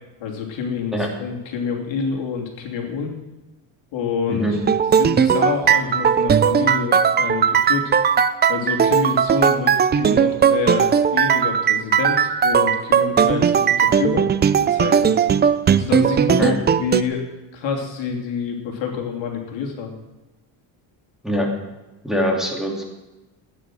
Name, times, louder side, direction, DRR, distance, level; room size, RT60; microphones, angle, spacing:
voice 1, 0.2-3.1 3.9-4.6 4.9-7.9 8.5-14.3 14.7-15.2 15.7-17.2 17.5-20.0, left 6 dB, 70° left, 1 dB, 3.1 m, -27 dB
sound 1, 4.5-17.0, right 7 dB, 25° right, 0.4 m, -18 dB
voice 2, 22.0-22.8, equal, ahead, -1 dB, 2.9 m, -23 dB
15.0 x 9.5 x 6.2 m, 1.1 s
cardioid pair, 125°, 47 cm